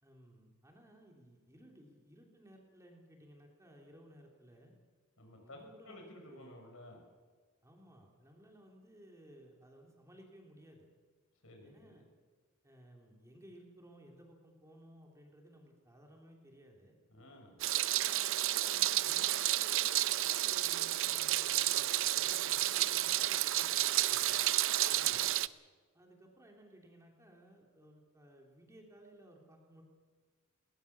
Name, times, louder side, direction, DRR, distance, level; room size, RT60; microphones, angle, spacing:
voice 1, 0.0-4.7 5.3-6.6 7.6-10.9 11.6-12.0 12.6-17.0 17.8-24.4 25.9-29.8, equal, 15° right, 1 dB, 3.2 m, -59 dB
voice 2, 5.2-5.6 5.8-7.0 11.4-12.0 17.1-17.6 24.9-25.3, left 1 dB, 70° left, 2 dB, 6.2 m, -54 dB
Meow, 17.6-25.5, right 14 dB, 65° right, 0.6 m, -31 dB
20.5 x 19.0 x 7.0 m, 1.5 s
head